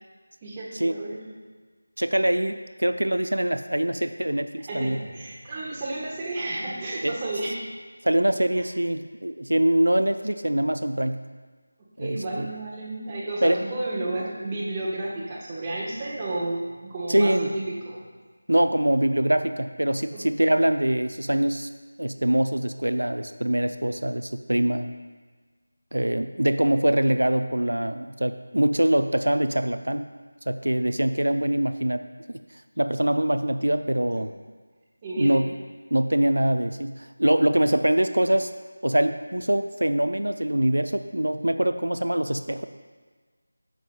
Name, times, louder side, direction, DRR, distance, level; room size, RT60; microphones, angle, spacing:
voice 1, 0.4-1.3 4.7-7.7 8.6-8.7 12.0-18.0 20.1-20.2 35.0-35.4, right 2 dB, 20° right, -6 dB, 1.3 m, -32 dB
voice 2, 2.0-5.0 7.0-7.1 8.0-11.2 12.0-12.5 13.4-13.6 17.1-17.5 18.5-21.7 22.0-24.9 25.9-30.1 30.5-32.0 32.8-34.3 35.2-35.5 35.9-38.5 38.8-42.6, right 1 dB, 80° right, 9 dB, 0.5 m, -23 dB
14.5 x 6.0 x 2.3 m, 1.4 s
figure-of-eight pair, 165°, 0 cm